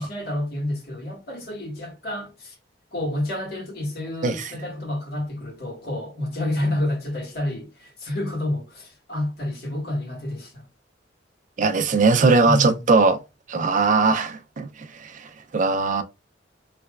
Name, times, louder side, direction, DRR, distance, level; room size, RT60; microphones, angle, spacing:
voice 1, 0.0-2.5 2.9-10.7 12.4-12.9, left 1 dB, 60° left, 1.7 m, -29 dB
voice 2, 4.2-4.6 11.6-13.2 13.5-16.0, right 3 dB, 45° right, 0.4 m, -20 dB
3.3 x 3.0 x 2.3 m
head